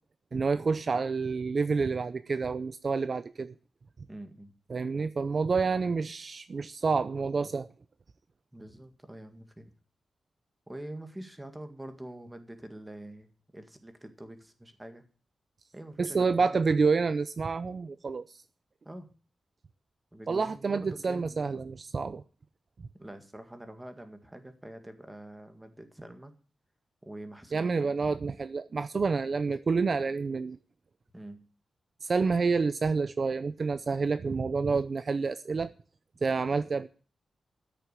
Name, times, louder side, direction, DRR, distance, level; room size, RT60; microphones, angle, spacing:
voice 1, 0.3-3.5 4.7-7.7 16.0-18.4 20.3-22.2 27.5-30.6 32.0-35.7 36.2-36.9, right 4 dB, 45° right, 0.5 m, -28 dB
voice 2, 4.1-4.5 8.5-9.7 10.7-13.3 13.5-15.0 15.7-16.5 16.8-17.1 18.8-19.1 20.1-21.7 22.9-26.3 27.0-27.9 31.1-31.4, right 1 dB, 10° right, 1.9 m, -45 dB
13.5 x 6.8 x 8.2 m
wide cardioid pair, 125°, 0 cm